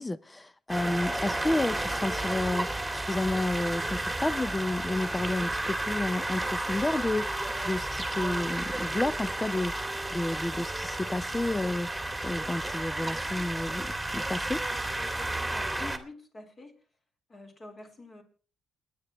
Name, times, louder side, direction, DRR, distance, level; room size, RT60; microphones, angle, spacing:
voice 1, 0.0-14.6, left 2 dB, 15° left, 0.6 m, -31 dB
sound 1, 0.7-16.0, right 2 dB, 5° right, 2.2 m, -32 dB
voice 2, 15.5-16.7 17.3-18.2, left 2 dB, 35° left, 4.3 m, -46 dB
28.0 x 9.9 x 3.1 m
cardioid pair, 90°, 0 cm